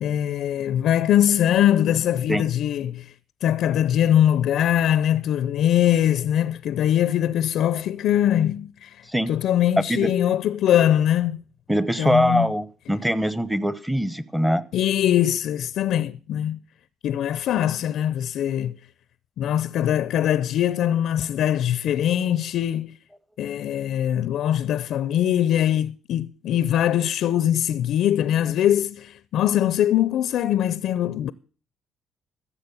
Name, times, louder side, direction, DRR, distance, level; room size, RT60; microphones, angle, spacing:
voice 1, 0.0-3.1 3.4-11.4 12.0-12.5 14.7-16.6 17.0-18.8 19.4-23.0 23.4-31.3, left 11 dB, 70° left, 0.5 m, -22 dB
voice 2, 11.7-14.6, equal, 5° right, 0.9 m, -23 dB
15.0 x 7.4 x 7.0 m
cardioid pair, 105°, 0 cm